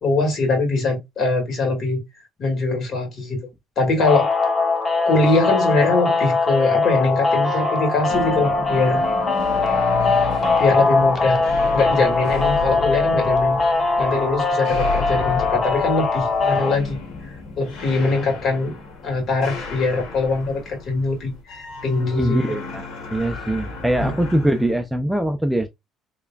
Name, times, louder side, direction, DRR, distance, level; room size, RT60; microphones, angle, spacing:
voice 1, 0.0-2.0 2.4-3.4 3.8-4.3 5.1-9.0 10.6-11.4 11.7-13.6 14.0-17.0 17.6-18.7 19.0-22.4 24.0-24.2, left 3 dB, 50° left, 2.0 m, -22 dB
sound 1, 4.0-16.8, left 3 dB, 30° left, 0.9 m, -21 dB
sound 2, 8.1-24.7, left 4 dB, 75° left, 1.8 m, -33 dB
voice 2, 22.2-25.7, right 1 dB, 5° right, 0.4 m, -22 dB
3.7 x 3.2 x 2.3 m
cardioid pair, 105°, 0 cm